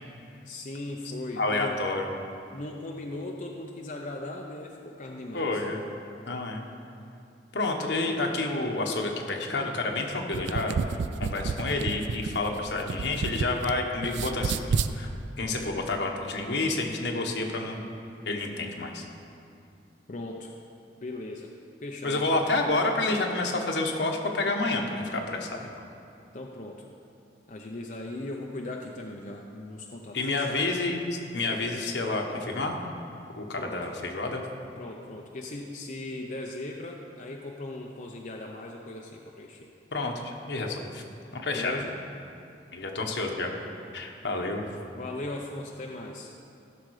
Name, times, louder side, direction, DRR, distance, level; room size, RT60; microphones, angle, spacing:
voice 1, 0.4-1.8 2.5-5.6 20.1-20.5 21.0-21.5 21.8-22.5 26.3-26.9 27.5-30.7 33.6-33.9 34.8-39.7 41.5-41.9 44.9-46.3, left 2 dB, 45° left, 0 dB, 0.6 m, -38 dB
voice 2, 1.4-2.1 5.3-5.8 6.3-6.6 7.5-10.8 11.2-14.6 14.9-15.1 15.4-17.9 18.2-19.0 22.0-25.6 30.1-32.8 33.3-34.4 39.9-41.0 41.3-41.8 42.7-43.5 43.9-44.6, left 2 dB, 75° left, 1 dB, 1.3 m, -29 dB
sound 1, 10.2-13.7 14.0-14.9, right 5 dB, 85° right, 0.4 m, -30 dB
15.5 x 6.6 x 4.8 m, 2.6 s
head